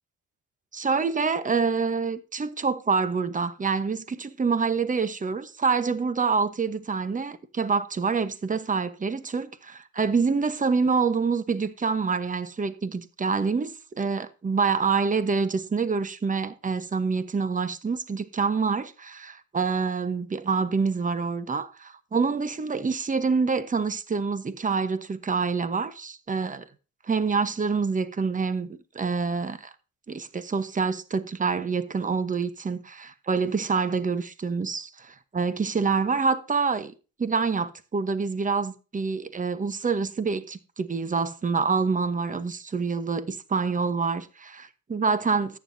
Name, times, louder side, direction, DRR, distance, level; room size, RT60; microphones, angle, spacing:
voice 1, 0.7-26.7 27.1-29.7 30.1-36.9 37.2-45.6, right 5 dB, 25° right, 1.1 m, -26 dB
14.0 x 9.6 x 2.7 m
cardioid pair, 90°, 30 cm